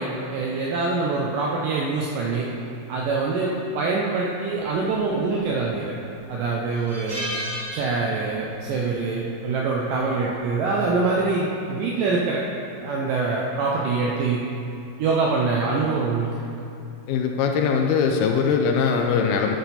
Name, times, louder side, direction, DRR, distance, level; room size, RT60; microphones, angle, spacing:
voice 1, 0.0-2.5 2.9-5.9 6.3-7.3 7.7-12.4 12.8-14.4 15.0-16.4, right 4 dB, 80° right, -3 dB, 1.9 m, -24 dB
sound 1, 6.7-8.5 8.8-9.0 10.3-10.6, equal, 25° right, 2.0 m, -33 dB
voice 2, 17.1-19.6, left 6 dB, 80° left, 3 dB, 2.4 m, -21 dB
12.0 x 6.3 x 4.2 m, 2.6 s
omnidirectional pair, 4.7 m